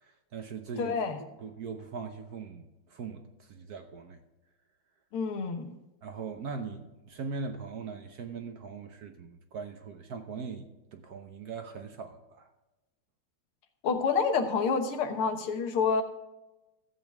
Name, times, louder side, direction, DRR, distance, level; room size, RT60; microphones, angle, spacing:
voice 1, 0.0-0.9 1.4-4.2 6.0-12.5, right 5 dB, 60° right, 6 dB, 1.1 m, -40 dB
voice 2, 0.8-1.2 5.1-5.7 13.8-16.0, left 5 dB, 90° left, 6 dB, 2.1 m, -28 dB
13.0 x 8.5 x 3.5 m, 1.0 s
omnidirectional pair, 2.3 m